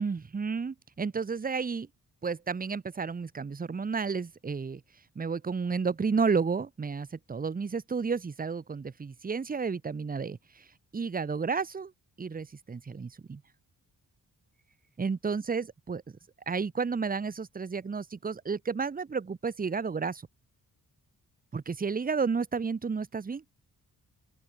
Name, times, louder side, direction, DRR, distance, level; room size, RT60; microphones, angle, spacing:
voice 1, 0.0-1.9 2.2-4.8 5.2-10.6 10.9-11.9 12.2-13.4 15.0-16.2 16.5-20.2 21.5-23.4, right 5 dB, 20° right, 0.6 m, -31 dB
open air
cardioid pair, 80°, 40 cm